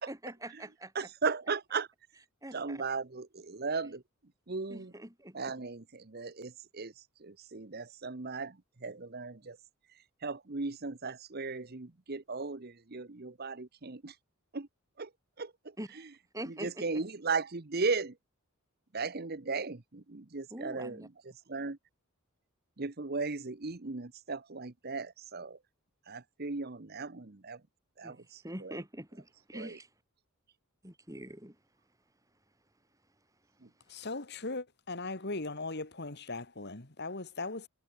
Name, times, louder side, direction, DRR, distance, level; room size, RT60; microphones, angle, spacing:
voice 1, 0.0-1.1 2.4-2.8 4.7-5.6 15.8-16.1 16.3-17.0 20.5-21.1 28.0-28.2 28.4-29.9 30.8-31.6, right 1 dB, 15° right, 7.9 m, -44 dB
voice 2, 1.0-1.9 2.5-4.0 4.5-4.9 5.3-6.9 7.2-8.5 8.8-9.6 10.2-14.1 14.5-14.7 15.0-15.1 15.4-15.5 16.6-18.1 18.9-21.0 21.5-21.8 22.8-25.6 26.1-27.6 28.0-28.2 29.5-29.7, right 4 dB, 45° right, 1.1 m, -36 dB
voice 3, 33.9-37.7, left 3 dB, 50° left, 2.3 m, -38 dB
head